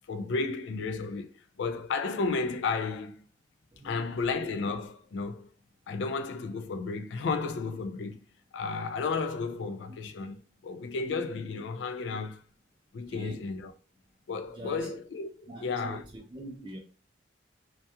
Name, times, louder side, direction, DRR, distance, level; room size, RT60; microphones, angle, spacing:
voice 1, 0.1-1.3 1.6-3.2 3.8-5.5 5.9-8.2 8.5-12.4 12.9-13.7 14.3-16.0, left 4 dB, 80° left, 0.4 m, -33 dB
voice 2, 3.7-4.2 13.1-13.4 14.5-14.9 15.5-16.8, right 1 dB, 25° right, 0.3 m, -43 dB
2.3 x 2.2 x 2.7 m
head